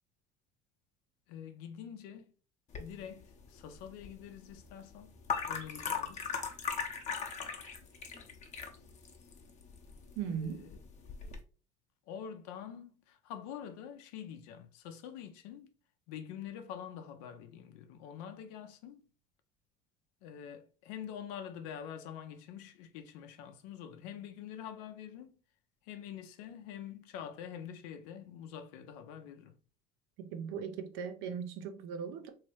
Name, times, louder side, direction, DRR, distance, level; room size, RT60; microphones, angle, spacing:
voice 1, 1.3-2.3 2.8-5.1 5.5-6.3 10.3-10.8 12.1-15.7 16.1-19.0 20.2-25.4 25.8-29.6, left 9 dB, 80° left, 0.6 m, -46 dB
sound 1, 2.7-11.4, left 6 dB, 35° left, 0.8 m, -40 dB
voice 2, 10.2-10.6 30.2-32.3, right 7 dB, 75° right, 0.6 m, -38 dB
3.0 x 2.7 x 3.1 m
supercardioid pair, 90°, 19 cm